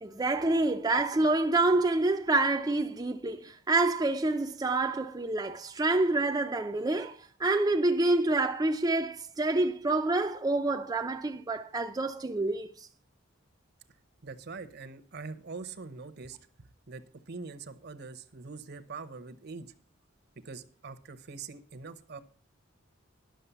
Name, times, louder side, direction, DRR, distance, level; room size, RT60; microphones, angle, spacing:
voice 1, 0.0-12.7, right 2 dB, 20° right, 0.5 m, -27 dB
voice 2, 14.2-16.4 16.9-19.6 20.4-22.2, right 4 dB, 55° right, 0.9 m, -43 dB
11.5 x 6.5 x 6.8 m
head